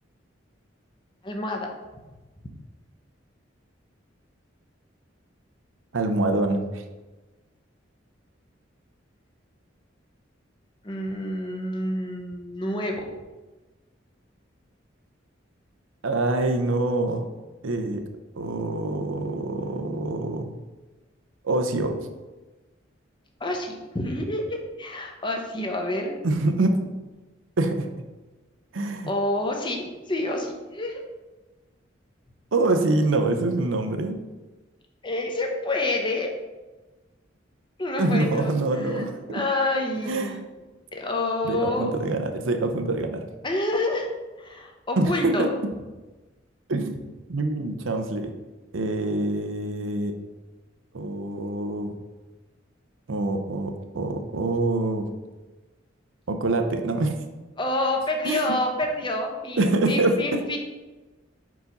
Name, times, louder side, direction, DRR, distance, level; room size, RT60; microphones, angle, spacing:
voice 1, 1.2-1.7 10.8-13.1 23.4-26.2 29.1-31.0 35.0-36.3 37.8-40.4 40.9-42.0 43.4-44.1 44.4-45.5 57.6-60.6, left 1 dB, 25° left, 2 dB, 0.8 m, -28 dB
voice 2, 5.9-6.8 16.0-17.3 17.6-18.0 18.4-20.5 21.4-22.0 26.2-26.8 27.6-27.9 28.7-29.1 32.5-34.1 38.0-39.4 40.1-40.4 41.4-43.3 45.0-45.5 46.7-47.0 47.3-48.3 48.7-50.1 50.9-51.9 53.1-55.1 56.3-57.2 58.2-58.5 59.6-60.4, right 2 dB, 80° right, 5 dB, 0.7 m, -25 dB
5.1 x 4.7 x 4.1 m, 1.2 s
head